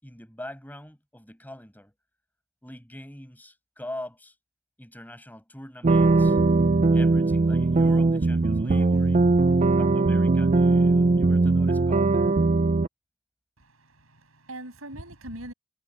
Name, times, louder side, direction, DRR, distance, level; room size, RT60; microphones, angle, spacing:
voice 1, 0.0-1.9 2.6-4.3 4.8-6.4 6.9-9.3 9.8-12.1, left 1 dB, 10° left, 7.5 m, -43 dB
sound 1, 5.8-12.9, right 3 dB, 35° right, 0.4 m, -20 dB
voice 2, 13.6-15.5, right 1 dB, 80° right, 7.0 m, -41 dB
head